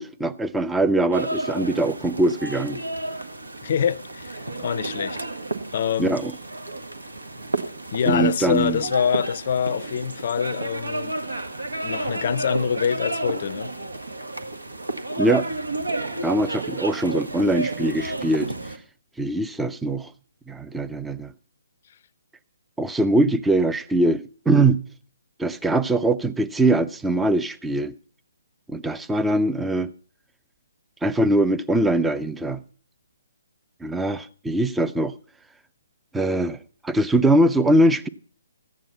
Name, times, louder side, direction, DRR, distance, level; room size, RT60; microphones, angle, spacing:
voice 1, 0.0-2.8 6.0-6.3 8.1-8.8 15.2-15.5 16.2-18.5 19.2-20.1 20.5-21.3 22.8-24.8 25.4-27.9 28.7-29.9 31.0-32.6 33.8-35.1 36.1-36.6 36.8-38.1, right 1 dB, 5° right, 0.5 m, -22 dB
sound 1, 1.1-18.8, right 2 dB, 80° right, 1.6 m, -31 dB
voice 2, 3.6-5.3 5.7-6.2 7.9-11.2 11.8-13.7, left 8 dB, 45° left, 0.5 m, -25 dB
14.5 x 9.5 x 5.4 m
figure-of-eight pair, 135°, 0 cm